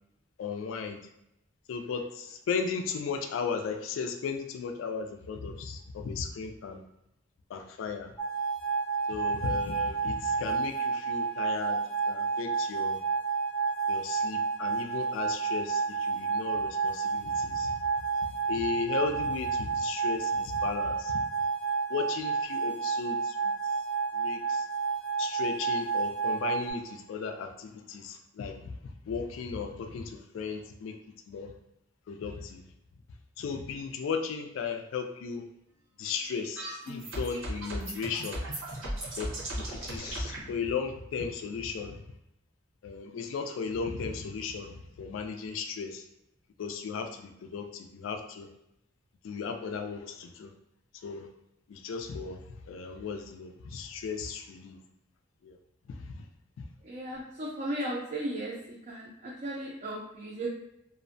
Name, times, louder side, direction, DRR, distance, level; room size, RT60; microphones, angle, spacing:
voice 1, 0.4-1.0 1.7-6.8 7.5-8.1 9.1-11.8 12.1-13.0 13.9-17.8 18.5-21.2 21.9-23.5 24.1-24.7 25.2-31.0 31.3-31.5 32.1-32.6 33.4-35.4 36.0-38.4 39.2-42.0 42.8-46.0 46.6-48.5 49.2-50.5 51.0-51.3 51.7-54.8 55.4-55.6 56.0-56.2 56.6-56.7, left 5 dB, 75° left, 6 dB, 0.3 m, -36 dB
sound 1, 8.2-26.7, right 5 dB, 15° left, 0.6 m, -30 dB
sound 2, 36.0-40.4, right 1 dB, 90° right, 0.9 m, -37 dB
voice 2, 56.8-58.5 58.9-60.5, right 1 dB, 40° right, -5 dB, 0.4 m, -36 dB
2.5 x 2.1 x 2.5 m, 0.82 s
head